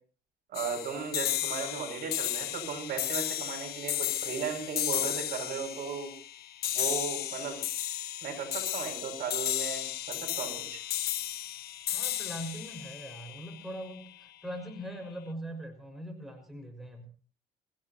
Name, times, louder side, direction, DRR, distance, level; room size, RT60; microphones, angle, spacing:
sound 1, 0.5-14.0, left 12 dB, 65° left, 1.4 m, -34 dB
voice 1, 0.5-6.1 6.7-7.6 8.2-10.8, right 6 dB, 60° right, 3 dB, 6.7 m, -36 dB
voice 2, 11.9-17.1, equal, ahead, 5 dB, 5.7 m, -41 dB
25.0 x 16.0 x 3.0 m, 0.41 s
cardioid pair, 110°, 17 cm